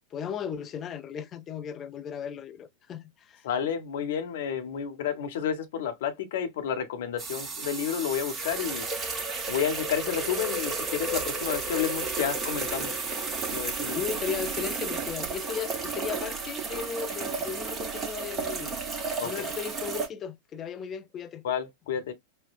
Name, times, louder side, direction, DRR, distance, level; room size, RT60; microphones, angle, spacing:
voice 1, 0.1-3.5 13.9-21.5, left 7 dB, 25° left, 0.6 m, -36 dB
voice 2, 3.4-8.9 9.5-12.9 13.5-14.0 19.2-19.5 21.4-22.1, left 8 dB, 55° left, 0.9 m, -31 dB
sound 1, 7.2-20.1, right 3 dB, 20° right, 1.0 m, -32 dB
5.7 x 2.1 x 2.4 m
figure-of-eight pair, 90°, 0 cm